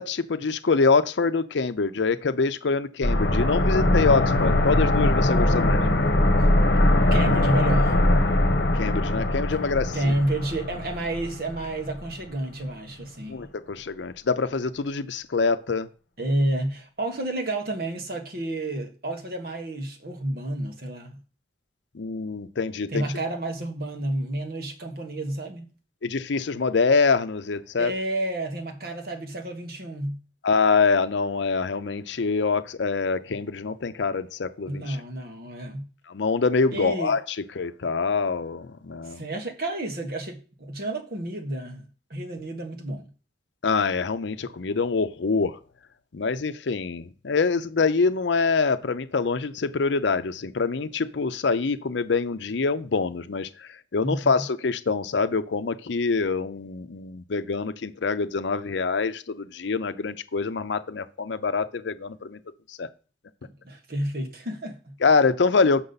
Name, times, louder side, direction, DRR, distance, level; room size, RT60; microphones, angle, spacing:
voice 1, 0.0-5.8 8.7-10.1 13.3-15.9 21.9-23.0 26.0-27.9 30.4-35.0 36.1-37.2 37.6-39.2 43.6-45.6 46.1-62.4 62.7-62.9 65.0-65.8, left 4 dB, 75° left, 0.6 m, -25 dB
sound 1, 3.0-11.7 12.0-12.1, left 1 dB, 60° left, 1.1 m, -21 dB
voice 2, 7.0-7.9 9.9-13.5 16.2-21.2 22.9-25.7 27.8-30.2 34.7-35.9 36.7-37.1 38.9-43.1 54.0-54.4 63.4-65.0, right 1 dB, 55° right, 1.4 m, -30 dB
6.7 x 6.1 x 4.0 m
head